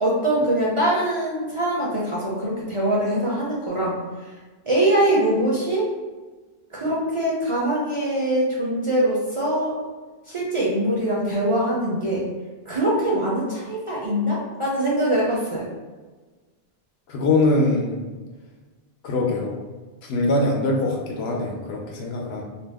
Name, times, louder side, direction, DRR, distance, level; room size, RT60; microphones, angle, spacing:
voice 1, 0.0-4.0 4.7-5.9 6.7-9.7 10.3-12.2 12.7-15.7, right 1 dB, 45° right, -6 dB, 0.4 m, -23 dB
voice 2, 17.1-18.0 19.0-19.5 20.0-22.4, left 2 dB, 80° left, -1 dB, 0.8 m, -22 dB
2.5 x 2.0 x 3.4 m, 1.3 s
omnidirectional pair, 1.1 m